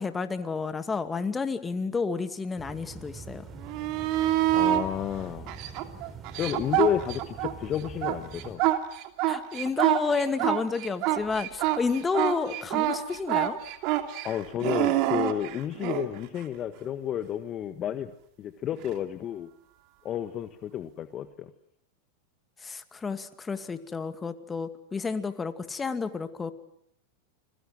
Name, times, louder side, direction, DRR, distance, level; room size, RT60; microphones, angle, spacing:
voice 1, 0.0-3.5 9.3-13.6 22.6-26.5, left 4 dB, 15° left, 10 dB, 2.2 m, -30 dB
sound 1, 2.6-8.6, right 4 dB, 20° right, 4.3 m, -44 dB
sound 2, 3.6-4.8 5.5-7.5 7.8-16.1 18.8-18.9, right 15 dB, 50° right, 2.8 m, -26 dB
voice 2, 4.5-5.6 6.3-8.6 14.2-18.1 18.4-19.5 20.0-21.5, left 10 dB, 35° left, 10 dB, 1.5 m, -31 dB
29.5 x 22.0 x 7.8 m, 0.71 s
hypercardioid pair, 100°, 0 cm